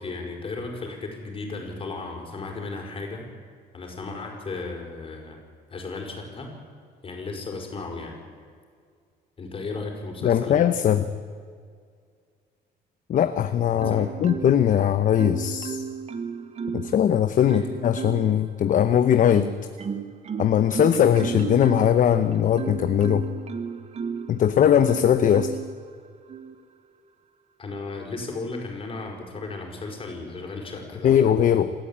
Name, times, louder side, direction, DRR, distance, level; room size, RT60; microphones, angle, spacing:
voice 1, 0.0-3.3 3.7-5.4 5.7-6.6 7.0-8.2 9.4-10.6 13.8-14.1 17.5-17.7 27.6-31.1, left 3 dB, 30° left, 2 dB, 5.3 m, -35 dB
voice 2, 10.2-11.1 13.1-15.8 16.7-19.5 20.4-23.3 24.3-25.6 31.0-31.7, left 9 dB, 50° left, 10 dB, 0.9 m, -20 dB
Marimba xylophone, 13.8-14.8 15.2-17.0 17.5-18.4 18.9-24.4 24.9-25.7 26.3-26.5, right 6 dB, 40° right, 1.3 m, -33 dB
27.5 x 13.5 x 8.8 m, 2.1 s
cardioid pair, 130°, 17 cm